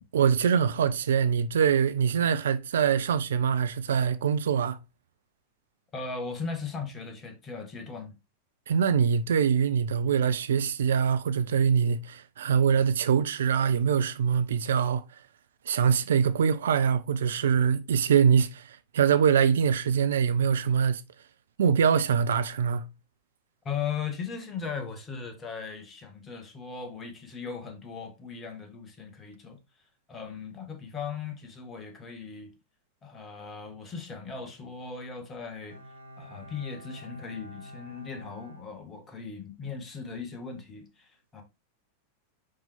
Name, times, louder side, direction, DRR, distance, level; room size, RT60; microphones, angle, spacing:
voice 1, 0.1-4.8 8.7-15.0 15.7-21.0 21.6-22.8, right 7 dB, 65° right, 0.4 m, -24 dB
voice 2, 5.9-8.2 23.6-29.6 30.1-32.5 33.0-35.8 36.2-41.4, left 5 dB, 20° left, 1.6 m, -38 dB
Bowed string instrument, 35.7-39.4 39.7-39.8, equal, 80° right, 1.1 m, -48 dB
5.4 x 5.2 x 3.3 m
figure-of-eight pair, 90°, 0 cm